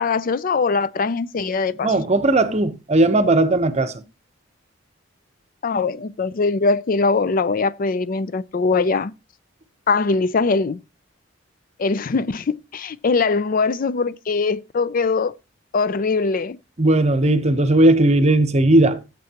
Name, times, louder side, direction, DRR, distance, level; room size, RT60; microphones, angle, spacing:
voice 1, 0.0-1.9 5.6-9.1 9.9-10.8 11.8-15.3 15.7-16.6, left 4 dB, 45° left, 0.4 m, -21 dB
voice 2, 1.8-3.9 16.8-19.0, right 2 dB, 35° right, 0.9 m, -17 dB
16.0 x 7.6 x 2.9 m
head